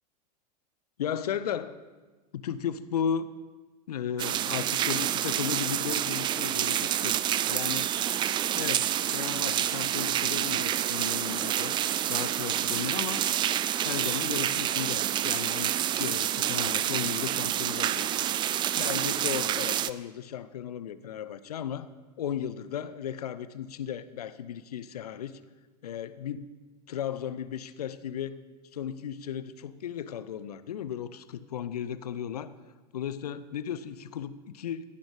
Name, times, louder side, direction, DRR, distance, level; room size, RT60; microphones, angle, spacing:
voice 1, 1.0-1.8 2.3-3.3 3.9-7.9 8.5-11.8 12.1-13.2 13.8-18.1 18.7-21.9 22.2-25.4 25.8-26.5 26.9-28.4 28.7-32.5 32.9-34.8, left 8 dB, 65° left, 14 dB, 0.7 m, -35 dB
sound 1, 4.2-19.9, right 11 dB, 20° right, 0.4 m, -28 dB
16.5 x 10.0 x 5.0 m, 1.3 s
figure-of-eight pair, 85°, 21 cm